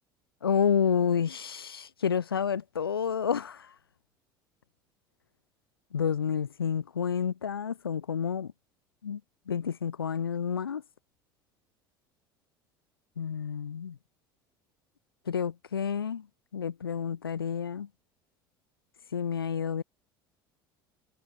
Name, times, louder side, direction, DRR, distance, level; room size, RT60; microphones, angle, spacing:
voice 1, 0.4-3.7 5.9-8.5 9.0-9.2 9.5-10.8 13.2-14.0 15.3-16.3 16.5-17.9 19.1-19.8, left 7 dB, 85° left, 3.2 m, -29 dB
hypercardioid pair, 70°, 12 cm